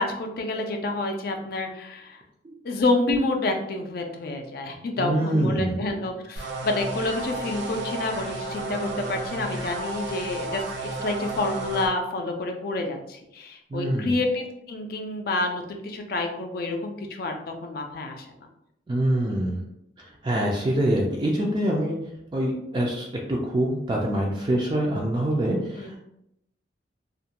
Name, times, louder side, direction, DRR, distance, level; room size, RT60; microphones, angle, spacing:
voice 1, 0.0-2.2 2.6-10.6 11.0-18.3 25.8-26.0, left 2 dB, 55° left, 4 dB, 0.4 m, -28 dB
voice 2, 5.0-5.9 13.7-14.1 18.9-19.6 20.2-22.0 22.3-26.0, right 1 dB, 25° right, -2 dB, 0.3 m, -25 dB
sound 1, 6.4-11.9, right 2 dB, 80° right, 0.5 m, -33 dB
2.4 x 2.1 x 2.8 m, 0.81 s
head